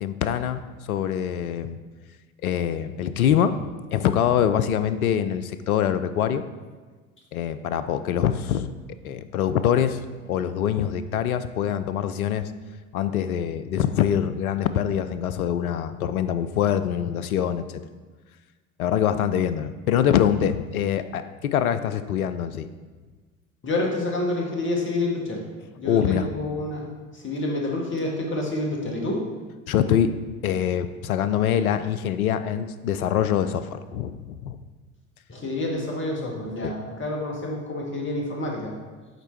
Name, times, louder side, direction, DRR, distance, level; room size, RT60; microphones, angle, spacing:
voice 1, 0.0-1.8 2.4-6.4 7.3-8.7 9.0-10.0 10.3-12.5 12.9-17.6 18.8-22.7 25.8-26.3 29.7-30.1 30.4-34.6 36.6-36.7, left 9 dB, 80° left, 11 dB, 0.5 m, -24 dB
voice 2, 23.6-25.4 25.8-26.9 27.1-29.2 35.3-38.7, left 2 dB, 25° left, -1 dB, 1.7 m, -28 dB
6.6 x 4.5 x 4.6 m, 1.4 s
figure-of-eight pair, 65°, 43 cm